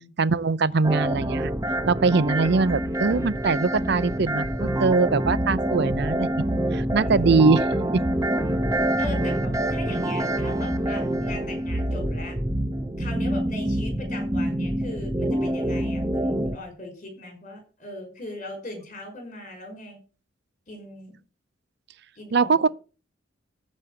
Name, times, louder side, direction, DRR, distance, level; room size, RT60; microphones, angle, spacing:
voice 1, 0.2-1.5 1.9-6.3 6.7-7.7 22.3-22.7, right 4 dB, 55° right, 0.5 m, -22 dB
sound 1, 0.8-16.6, right 1 dB, 15° right, 0.9 m, -26 dB
voice 2, 7.0-7.5 9.0-12.4 13.0-20.0 20.7-21.2 22.2-22.5, left 1 dB, 40° left, 5.4 m, -39 dB
14.0 x 5.3 x 7.9 m
head